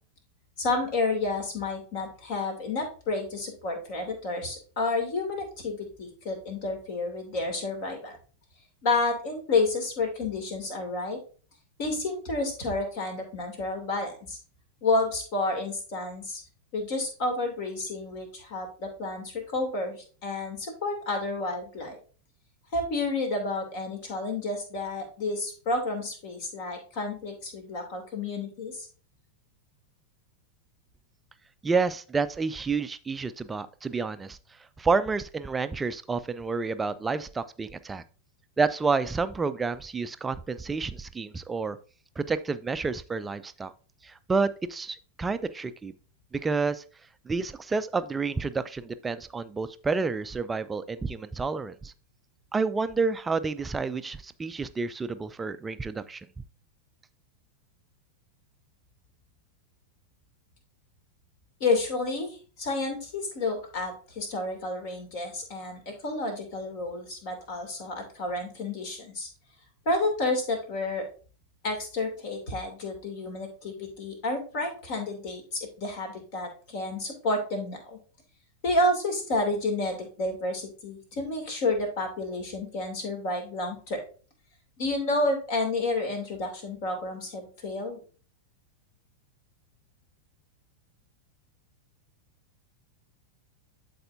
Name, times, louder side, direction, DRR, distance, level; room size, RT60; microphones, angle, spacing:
voice 1, 0.6-8.2 8.8-11.2 11.8-14.4 14.8-16.4 16.7-22.0 22.7-28.9 61.6-69.3 69.9-71.0 71.6-78.0 78.6-84.0 84.8-88.0, left 2 dB, 45° left, 4 dB, 2.5 m, -30 dB
voice 2, 31.6-34.4 34.8-38.0 38.6-41.8 42.2-43.7 44.0-45.9 46.3-46.8 47.3-51.9 52.5-56.3, right 4 dB, 15° right, 13 dB, 0.5 m, -29 dB
12.0 x 4.2 x 2.6 m, 0.38 s
figure-of-eight pair, 90°, 0 cm